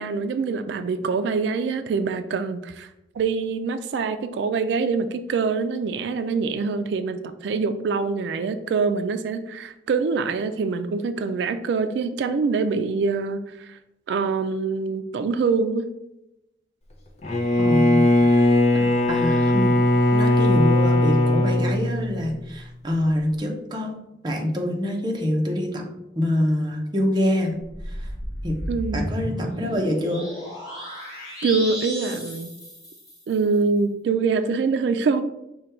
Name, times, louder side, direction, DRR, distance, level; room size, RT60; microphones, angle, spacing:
voice 1, 0.0-2.9 3.2-13.8 14.1-15.9 28.7-29.1 31.4-32.5 33.3-35.2, right 4 dB, 85° right, 9 dB, 0.3 m, -24 dB
Bowed string instrument, 17.2-22.6, left 1 dB, 40° left, 0.6 m, -19 dB
voice 2, 17.6-18.4 18.7-19.7 20.1-24.0 24.2-25.8 26.2-27.6 27.8-28.1 28.4-28.6 28.9-30.3, left 1 dB, 25° right, 0 dB, 0.6 m, -25 dB
sound 1, 27.6-33.4, equal, 20° left, 1.3 m, -33 dB
5.1 x 2.2 x 4.3 m, 0.90 s
head